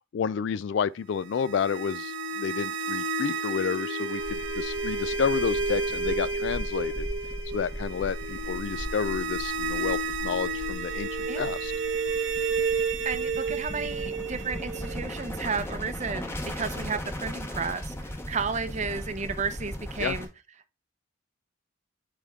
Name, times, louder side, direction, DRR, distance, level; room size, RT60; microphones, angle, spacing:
voice 1, 0.1-7.1 7.5-11.1 11.3-11.7 20.0-20.2, left 7 dB, 60° left, 0.3 m, -30 dB
sound 1, 1.2-16.1, right 3 dB, 70° right, 0.9 m, -31 dB
sound 2, 4.2-20.3, equal, 10° left, 0.8 m, -38 dB
voice 2, 13.0-17.9 18.3-20.3, right 5 dB, 35° right, 0.6 m, -32 dB
8.3 x 3.5 x 3.6 m
head